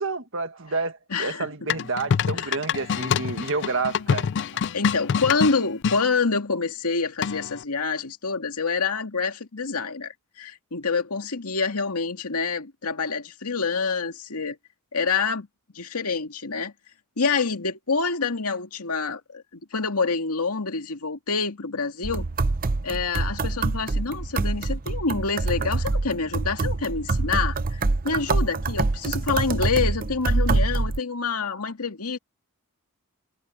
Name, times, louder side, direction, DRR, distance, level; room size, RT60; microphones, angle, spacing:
voice 1, 0.0-4.3, right 3 dB, 60° right, 1.7 m, -29 dB
voice 2, 1.1-1.5 2.4-2.5 4.7-14.6 14.9-15.5 15.7-16.7 17.2-22.3 22.8-32.2, left 4 dB, 80° left, 2.1 m, -27 dB
sound 1, 1.7-6.0 7.2-7.6, left 7 dB, 55° left, 0.4 m, -26 dB
sound 2, 22.0-31.0, right 3 dB, 40° right, 0.6 m, -25 dB
head